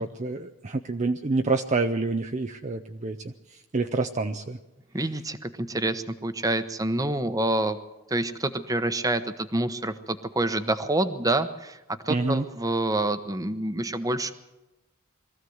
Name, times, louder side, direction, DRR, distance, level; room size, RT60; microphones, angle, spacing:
voice 1, 0.0-4.6 12.1-12.4, right 3 dB, 35° right, 6 dB, 0.6 m, -28 dB
voice 2, 4.9-7.8 8.1-11.8 12.0-14.3, right 2 dB, 15° right, 10 dB, 1.0 m, -27 dB
22.5 x 14.5 x 7.9 m, 0.98 s
head